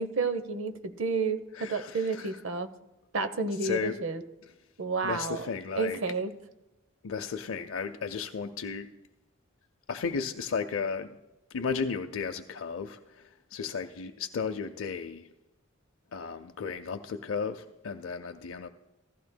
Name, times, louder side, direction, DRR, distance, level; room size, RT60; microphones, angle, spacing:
voice 1, 0.0-2.7 3.1-4.2 4.8-5.5 5.8-6.3, right 4 dB, 75° right, 10 dB, 0.8 m, -30 dB
voice 2, 1.5-2.3 3.6-4.0 5.0-6.0 7.0-8.9 9.9-11.1 11.5-15.3 16.1-18.7, left 5 dB, 80° left, 7 dB, 0.5 m, -34 dB
15.5 x 14.5 x 2.2 m, 0.99 s
head